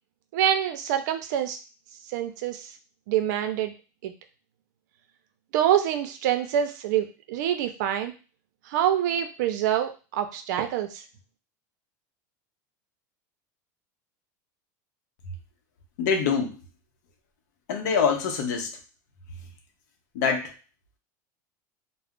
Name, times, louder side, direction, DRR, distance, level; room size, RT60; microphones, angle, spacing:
voice 1, 0.3-1.6 2.1-2.7 3.1-3.7 4.0-4.1 5.5-8.1 8.7-11.0, right 10 dB, 75° right, 7 dB, 0.5 m, -26 dB
voice 2, 16.0-16.6 17.7-18.7 20.1-20.5, left 6 dB, 80° left, 4 dB, 0.7 m, -24 dB
2.4 x 2.0 x 3.5 m, 0.32 s
supercardioid pair, 125°, 10 cm